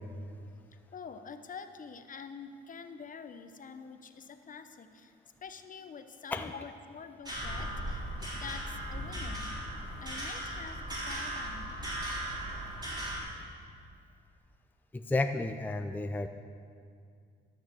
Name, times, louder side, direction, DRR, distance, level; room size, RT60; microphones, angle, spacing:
voice 1, 0.9-5.1 5.4-9.6 10.0-11.8, left 5 dB, 40° left, 9 dB, 0.8 m, -46 dB
sound 1, 7.2-13.2, right 1 dB, 20° right, 3.8 m, -37 dB
voice 2, 14.9-16.3, left 2 dB, 10° left, 7 dB, 0.5 m, -32 dB
13.5 x 6.6 x 7.4 m, 2.3 s
cardioid pair, 90°, 20 cm